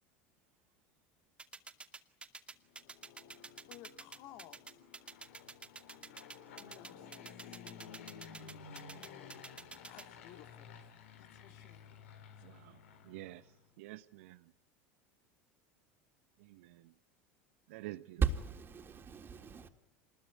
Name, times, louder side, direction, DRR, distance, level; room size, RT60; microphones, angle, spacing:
sound 1, 1.4-10.0, right 3 dB, 15° right, 2.3 m, -48 dB
Fixed-wing aircraft airplane, 2.6-13.7, left 7 dB, 80° left, 4.0 m, -54 dB
voice 1, 3.7-4.8 6.5-7.6 9.9-11.9 12.4-12.5, left 12 dB, 65° left, 8 dB, 2.3 m, -57 dB
voice 2, 12.4-13.4 13.8-14.5 16.4-16.9 17.7-18.2, right 17 dB, 75° right, 12 dB, 1.2 m, -49 dB
voice 3, 18.2-19.7, right 6 dB, 30° right, 6 dB, 3.5 m, -35 dB
26.0 x 21.0 x 9.6 m, 0.91 s
hypercardioid pair, 90°, 7 cm